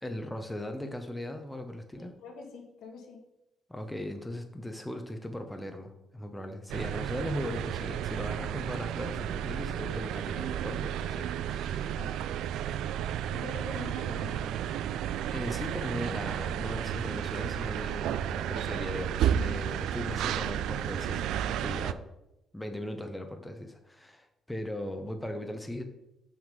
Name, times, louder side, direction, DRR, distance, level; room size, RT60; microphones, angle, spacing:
voice 1, 0.0-2.1 3.7-12.0 15.3-21.3 21.6-22.0 22.5-25.8, left 1 dB, 5° left, 5 dB, 0.9 m, -38 dB
voice 2, 2.0-3.2 11.8-12.2 13.3-14.6, left 3 dB, 80° left, 2 dB, 1.5 m, -44 dB
sound 1, 6.7-21.9, right 10 dB, 85° right, 0.3 m, -32 dB
6.2 x 5.7 x 5.3 m, 0.90 s
cardioid pair, 90°, 0 cm